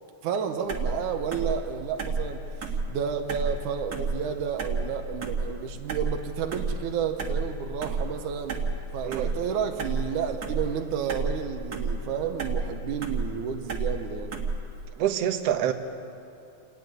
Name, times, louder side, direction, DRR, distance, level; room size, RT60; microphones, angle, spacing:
voice 1, 0.2-2.4 2.9-8.6 8.9-14.3, right 7 dB, 80° right, 5 dB, 2.5 m, -31 dB
sound 1, 0.7-14.8, right 3 dB, 35° right, 1.8 m, -32 dB
voice 2, 15.0-15.7, right 10 dB, 60° right, 6 dB, 1.9 m, -26 dB
29.5 x 10.5 x 9.3 m, 2.7 s
omnidirectional pair, 3.6 m